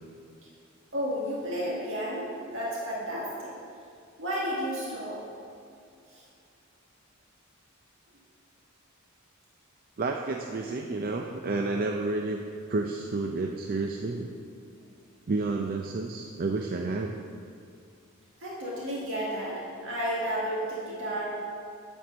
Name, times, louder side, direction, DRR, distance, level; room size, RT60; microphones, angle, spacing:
voice 1, 0.9-3.5 4.2-5.2 6.1-6.2 18.4-21.3, equal, 65° right, -5 dB, 1.8 m, -32 dB
voice 2, 10.0-12.4 12.7-14.3 15.3-17.2, right 3 dB, 45° right, 3 dB, 0.5 m, -30 dB
11.0 x 4.5 x 7.3 m, 2.3 s
head